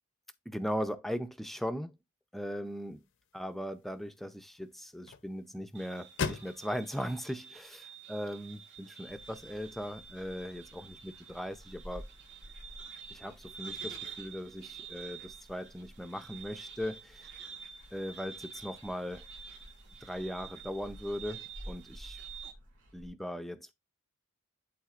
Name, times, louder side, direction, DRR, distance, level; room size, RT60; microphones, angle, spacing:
voice 1, 0.5-2.0 2.3-3.0 3.3-12.1 13.1-17.3 17.9-19.3 20.0-22.2 22.9-23.7, equal, ahead, 0.5 m, -39 dB
sound 1, 2.6-8.8, left 5 dB, 55° left, 0.6 m, -44 dB
sound 2, 5.7-22.5, right 6 dB, 55° right, 1.5 m, -49 dB
sound 3, 9.1-23.1, equal, 90° right, 2.6 m, -53 dB
11.5 x 4.0 x 2.5 m
head